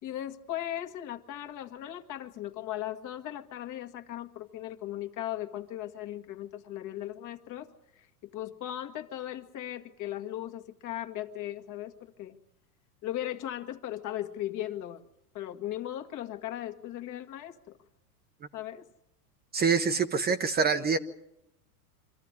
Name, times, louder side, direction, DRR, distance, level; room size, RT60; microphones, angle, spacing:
voice 1, 0.0-12.4 13.0-15.1 15.3-17.8 18.5-18.8, left 12 dB, 40° left, 7 dB, 1.7 m, -38 dB
voice 2, 19.5-21.0, right 5 dB, 20° right, 8 dB, 0.9 m, -25 dB
25.5 x 14.0 x 9.7 m, 0.83 s
supercardioid pair, 125°, 46 cm